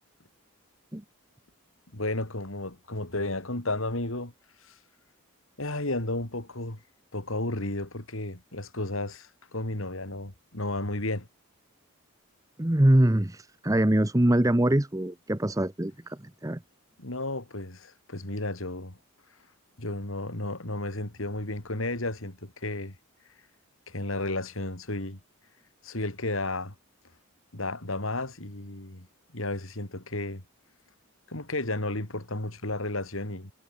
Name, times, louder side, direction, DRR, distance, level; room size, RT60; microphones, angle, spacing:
voice 1, 1.9-4.3 4.6-4.8 5.6-6.8 7.1-11.3 17.0-19.0 19.8-23.0 23.9-25.2 25.8-26.8 27.5-29.1 29.3-30.4 31.3-33.5, left 2 dB, 70° left, 3.5 m, -33 dB
voice 2, 12.6-16.6, right 1 dB, 15° right, 0.8 m, -23 dB
head